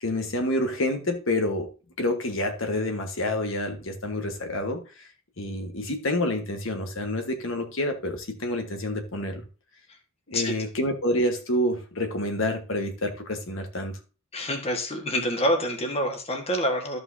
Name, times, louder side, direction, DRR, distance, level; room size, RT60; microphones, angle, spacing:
voice 1, 0.0-1.7 2.0-4.8 5.4-9.4 10.3-14.0, left 1 dB, 65° left, 1.5 m, -28 dB
voice 2, 14.3-17.0, equal, 30° left, 1.5 m, -27 dB
13.0 x 5.5 x 2.7 m
head